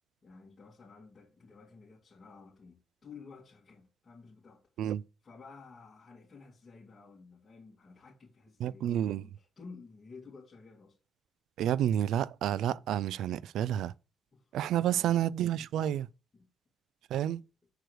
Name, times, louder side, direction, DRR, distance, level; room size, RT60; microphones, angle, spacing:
voice 1, 0.2-4.6 5.2-11.0 14.3-14.6 14.9-15.3 16.3-16.5, left 4 dB, 30° left, 2.2 m, -53 dB
voice 2, 8.6-9.2 11.6-13.9 14.5-16.1 17.1-17.4, right 11 dB, 80° right, 0.3 m, -30 dB
6.5 x 4.6 x 6.2 m
cardioid pair, 90°, 0 cm